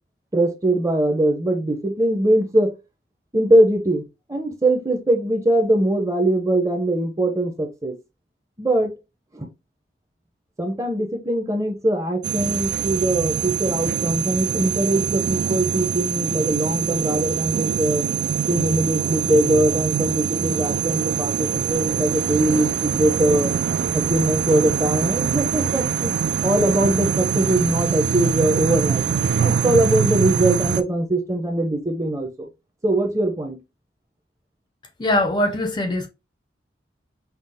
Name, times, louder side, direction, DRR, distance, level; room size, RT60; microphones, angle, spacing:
voice 1, 0.3-2.7 3.3-4.0 4.3-8.0 8.6-8.9 9.3-9.5 10.6-18.1 18.5-23.5 23.9-26.1 26.4-29.0 29.4-32.5 32.8-33.6, right 1 dB, 20° right, 0.7 m, -21 dB
sound 1, 12.2-30.8, right 7 dB, 75° right, 0.3 m, -24 dB
voice 2, 35.0-36.1, left 1 dB, 25° left, 0.4 m, -21 dB
5.8 x 2.0 x 3.3 m
head